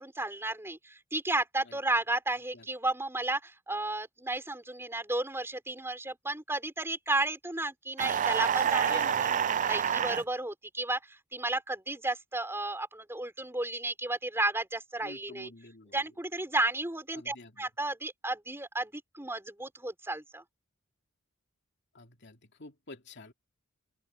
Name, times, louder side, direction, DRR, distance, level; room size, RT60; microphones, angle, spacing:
voice 1, 0.0-9.3 9.6-15.5 15.9-20.4, right 2 dB, 10° right, 4.7 m, -33 dB
sound 1, 8.0-10.2, right 8 dB, 40° right, 0.4 m, -27 dB
voice 2, 8.8-9.4 15.0-16.0 17.2-17.7 21.9-23.3, left 2 dB, 55° left, 2.7 m, -48 dB
open air
head